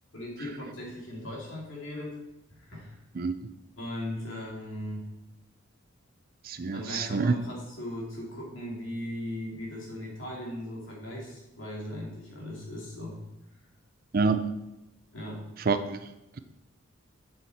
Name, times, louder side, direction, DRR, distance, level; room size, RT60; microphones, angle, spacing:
voice 1, 0.1-2.2 2.5-3.0 3.8-5.1 6.7-13.2 15.1-15.5, left 1 dB, 70° left, -3 dB, 2.7 m, -38 dB
voice 2, 6.4-7.4 14.1-14.4 15.7-16.0, right 4 dB, 45° right, 10 dB, 0.5 m, -26 dB
7.5 x 6.5 x 4.2 m, 0.92 s
head